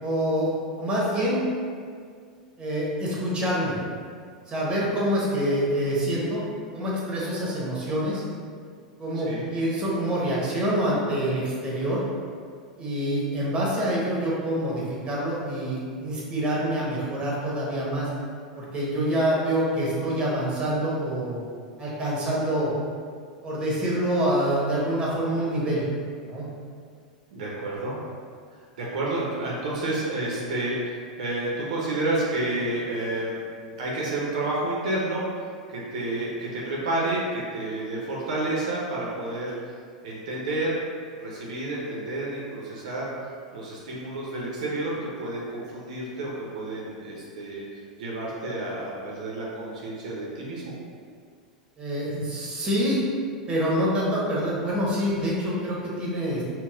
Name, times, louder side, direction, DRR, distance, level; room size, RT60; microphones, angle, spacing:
voice 1, 0.0-1.4 2.6-3.8 4.5-6.5 6.7-8.2 9.0-12.0 12.8-18.1 18.5-21.4 21.8-22.7 23.4-25.8 26.2-26.5 51.8-53.0 53.5-56.4, equal, 25° right, -5 dB, 0.9 m, -26 dB
voice 2, 9.1-9.5 27.3-28.0 28.8-33.3 33.8-35.2 35.7-39.7 40.0-40.8 41.2-43.1 43.5-47.6 48.0-50.7, right 2 dB, 70° right, -4 dB, 0.6 m, -30 dB
3.9 x 2.1 x 2.4 m, 2.1 s
hypercardioid pair, 90°, 4 cm